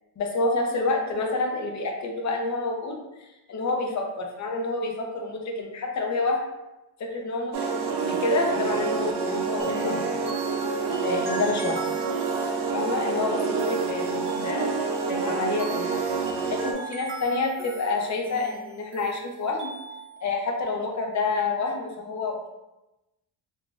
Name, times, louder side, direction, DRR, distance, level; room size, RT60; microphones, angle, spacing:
voice 1, 0.2-6.4 7.0-10.2 11.0-11.8 12.7-16.2 16.5-19.7 20.2-22.5, left 3 dB, 35° left, 2 dB, 0.6 m, -28 dB
sound 1, 7.5-16.7, right 5 dB, 60° right, 0.6 m, -28 dB
sound 2, 9.6-20.3, right 1 dB, 25° right, 0.8 m, -40 dB
3.7 x 2.3 x 2.4 m, 0.97 s
cardioid pair, 105°, 48 cm